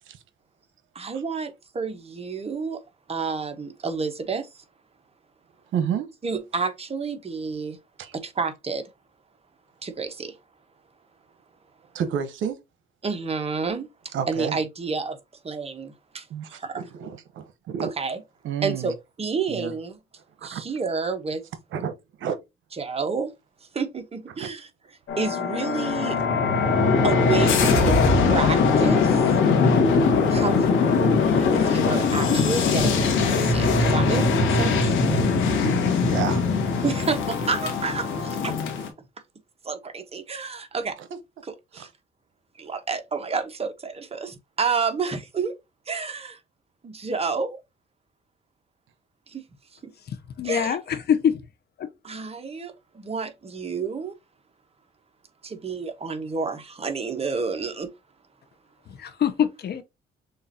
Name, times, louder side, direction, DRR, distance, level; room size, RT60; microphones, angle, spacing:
voice 1, 0.9-2.8 3.1-4.6 6.2-7.8 8.1-8.8 9.8-10.4 13.0-13.9 14.3-15.2 15.4-16.8 17.8-18.2 18.6-20.0 20.4-21.4 22.8-23.3 23.7-24.7 25.2-26.2 27.0-29.3 30.3-34.9 36.8-38.6 39.6-41.0 41.4-41.9 42.6-45.5 45.9-46.4 46.8-47.6 49.3-49.4 49.8-49.9 50.4-50.8 52.0-54.1 55.4-57.9, right 5 dB, 30° right, 1.0 m, -30 dB
voice 2, 5.7-6.1 8.0-8.1 11.9-12.6 14.1-14.6 16.3-17.9 18.4-18.9 19.5-19.7 20.4-20.6 21.7-22.4 24.4-24.5 35.0-35.3 36.0-36.8 41.0-41.2 41.8-41.9, right 8 dB, 75° right, 0.9 m, -30 dB
sound 1, 25.1-38.9, left 4 dB, 85° left, 1.3 m, -21 dB
voice 3, 50.4-51.4 51.8-51.9 59.0-59.8, left 8 dB, 55° left, 0.7 m, -24 dB
6.5 x 2.5 x 2.7 m
cardioid pair, 90°, 20 cm